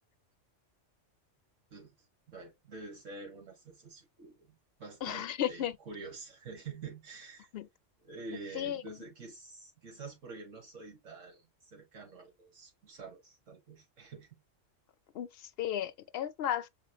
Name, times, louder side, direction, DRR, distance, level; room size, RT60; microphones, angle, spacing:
voice 1, 2.3-7.5 8.0-14.4, right 4 dB, 90° right, 1.9 m, -47 dB
voice 2, 5.0-5.8 7.5-7.7 8.5-9.0 15.1-16.7, left 10 dB, 60° left, 0.8 m, -34 dB
6.0 x 3.7 x 2.2 m
omnidirectional pair, 1.3 m